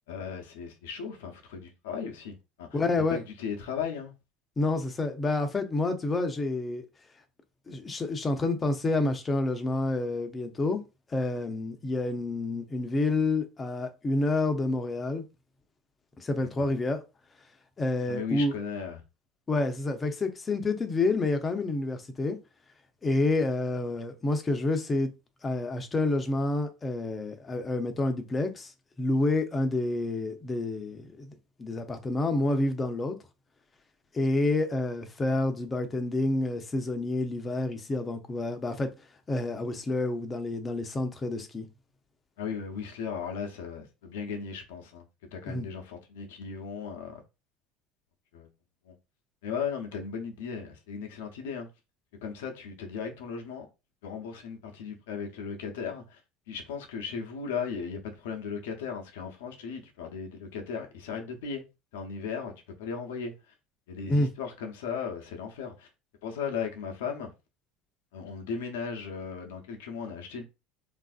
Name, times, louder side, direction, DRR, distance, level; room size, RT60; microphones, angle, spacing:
voice 1, 0.1-2.8 3.1-4.1 16.6-16.7 18.1-19.0 42.4-47.2 48.3-48.5 48.8-48.9 49.4-51.7 52.2-53.7 54.0-56.2 56.5-61.6 61.9-62.5 62.8-63.5 63.9-65.9 66.2-67.3 68.1-70.4, left 6 dB, 85° left, 0.6 m, -36 dB
voice 2, 2.7-3.2 4.6-6.8 7.7-10.8 11.1-15.2 16.2-17.0 17.8-18.5 19.5-22.4 23.0-25.1 25.4-28.7 29.0-33.2 34.1-38.9 39.3-41.7 45.5-45.7 64.1-64.3, left 2 dB, 25° left, 0.6 m, -28 dB
3.3 x 2.5 x 2.4 m
supercardioid pair, 95°, 0 cm